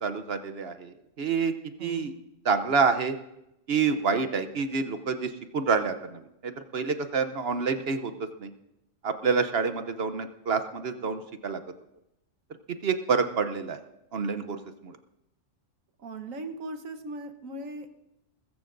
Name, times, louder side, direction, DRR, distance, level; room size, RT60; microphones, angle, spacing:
voice 1, 0.0-1.5 1.8-2.1 2.4-3.2 3.7-8.1 8.4-8.5 9.0-11.6 12.7-13.8 14.1-15.0, right 5 dB, 55° right, 9 dB, 0.9 m, -28 dB
voice 2, 1.8-2.1 16.0-17.9, right 2 dB, 90° right, 7 dB, 1.5 m, -38 dB
20.5 x 14.5 x 2.6 m, 0.85 s
omnidirectional pair, 1.3 m